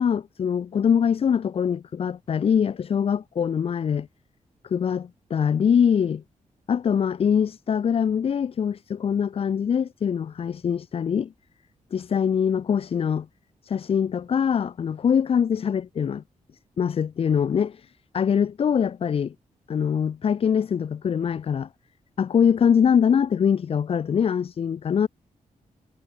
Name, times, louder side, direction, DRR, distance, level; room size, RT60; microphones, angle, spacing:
voice 1, 0.0-4.1 4.6-6.2 6.7-11.3 11.9-13.3 13.6-16.2 16.8-19.3 19.7-21.7 22.2-25.1, left 7 dB, 45° left, 0.5 m, -23 dB
wide cardioid pair, 135°, 14 cm